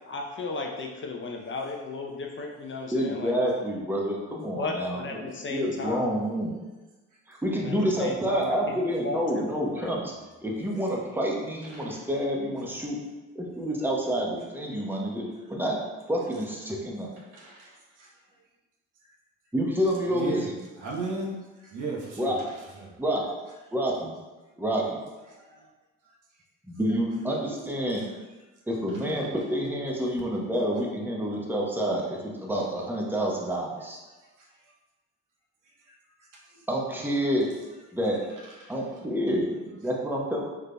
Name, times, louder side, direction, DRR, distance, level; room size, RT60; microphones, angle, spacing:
voice 1, 0.1-3.3 4.6-6.2 7.6-9.9, left 3 dB, 35° left, 1 dB, 0.5 m, -35 dB
voice 2, 2.9-5.2 5.5-6.5 7.3-10.1 10.4-13.0 13.3-15.8 16.1-17.1 19.5-20.6 22.2-22.4 23.0-23.3 23.7-24.1 24.6-25.0 26.7-28.0 28.7-34.0 36.7-37.5 37.9-38.2 38.7-40.4, equal, 5° right, -2 dB, 0.8 m, -28 dB
voice 3, 17.3-18.1 20.1-20.4 20.8-22.3 22.8-22.9 25.3-25.6 36.3-36.4 38.6-38.7, right 3 dB, 60° right, -3 dB, 0.9 m, -35 dB
3.7 x 3.3 x 2.2 m, 1.2 s
supercardioid pair, 60°, 34 cm